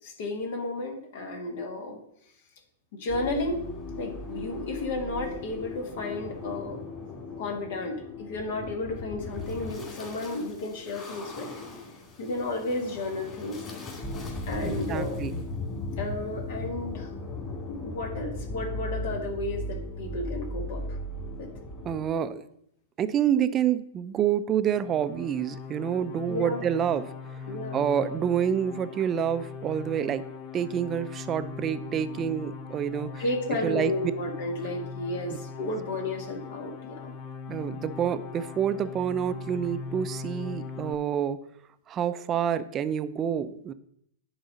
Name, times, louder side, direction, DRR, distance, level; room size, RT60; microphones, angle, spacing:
voice 1, 0.0-2.0 3.0-3.6 3.9-6.8 7.4-11.5 12.2-13.6 14.5-15.2 16.0-17.1 17.7-21.0 21.4-21.5 26.3-26.6 27.5-27.8 33.2-37.1, left 2 dB, 60° left, 2 dB, 1.6 m, -33 dB
sound 1, 3.1-22.0, left 2 dB, 20° left, 2.4 m, -37 dB
voice 2, 14.6-15.4 21.8-22.5 23.0-27.5 27.7-30.2 30.5-33.2 33.6-33.9 37.5-41.4 41.9-43.7, right 9 dB, 25° right, 13 dB, 0.5 m, -28 dB
sound 2, 24.7-40.9, left 5 dB, 35° left, 0.7 m, -40 dB
10.5 x 4.0 x 5.3 m, 0.72 s
hypercardioid pair, 110°, 0 cm